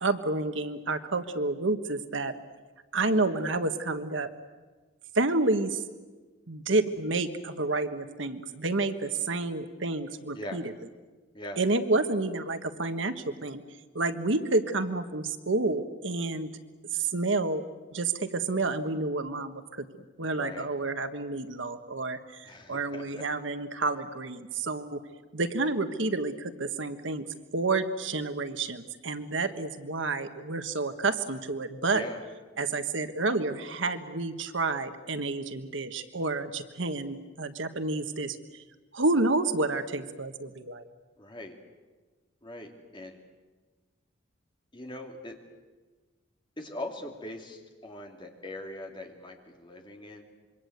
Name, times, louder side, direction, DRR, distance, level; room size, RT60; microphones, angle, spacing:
voice 1, 0.0-2.3 2.9-4.3 5.1-5.8 6.5-10.6 11.6-13.6 13.9-16.5 16.9-17.6 17.9-19.8 20.2-25.0 25.3-27.2 27.5-32.0 32.6-38.4 38.9-40.9, right 3 dB, 80° right, 9 dB, 1.5 m, -29 dB
voice 2, 9.0-9.3 10.3-10.6 11.3-11.6 20.3-20.7 22.4-23.2 29.3-29.6 31.9-32.2 41.2-41.5 42.4-43.2 44.7-45.3 46.6-50.2, left 1 dB, 25° left, 2 dB, 2.9 m, -41 dB
26.0 x 23.5 x 8.1 m, 1.3 s
head